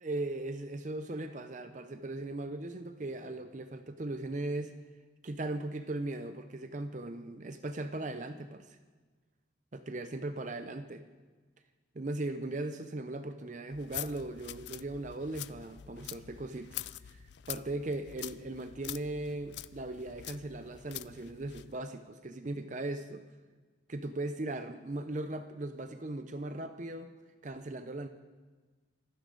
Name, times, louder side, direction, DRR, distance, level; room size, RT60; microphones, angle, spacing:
voice 1, 0.0-4.8 5.2-8.8 9.7-11.0 11.9-17.2 17.5-23.3 23.9-27.1 27.4-28.1, right 2 dB, 40° right, 9 dB, 0.6 m, -38 dB
sound 1, 13.7-21.7, left 13 dB, 60° left, 0.4 m, -45 dB
25.0 x 11.0 x 3.9 m, 1.4 s
head